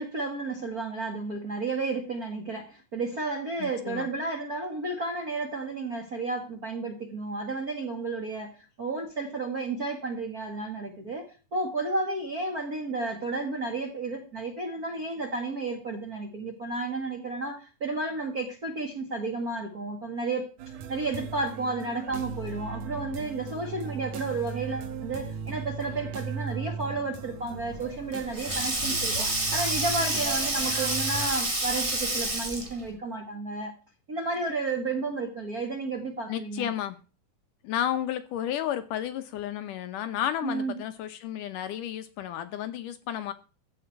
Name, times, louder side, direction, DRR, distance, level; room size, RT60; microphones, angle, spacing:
voice 1, 0.0-33.7 34.1-36.7 40.4-40.7, right 3 dB, 35° right, 3 dB, 1.5 m, -32 dB
voice 2, 3.6-4.1 36.3-37.0 37.6-43.3, left 11 dB, 75° left, 11 dB, 2.2 m, -32 dB
sound 1, 20.6-31.3, right 6 dB, 65° right, 1.9 m, -38 dB
Sink (filling or washing), 27.7-32.9, right 1 dB, 10° right, 2.3 m, -29 dB
14.5 x 4.9 x 9.0 m, 0.34 s
omnidirectional pair, 4.2 m